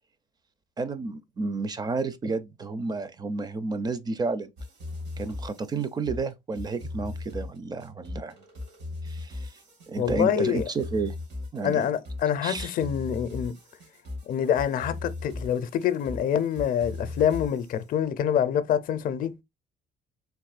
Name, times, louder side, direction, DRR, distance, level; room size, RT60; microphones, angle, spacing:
voice 1, 0.8-4.5 5.2-8.4 9.0-9.5 9.9-11.1 11.5-11.9 12.4-12.7, right 4 dB, 25° right, 0.4 m, -31 dB
sound 1, 4.6-17.8, left 2 dB, 80° right, 1.8 m, -38 dB
voice 2, 10.0-10.7 11.6-13.6 14.2-19.4, left 9 dB, 55° left, 0.5 m, -26 dB
3.5 x 2.6 x 2.4 m
cardioid pair, 110°, 17 cm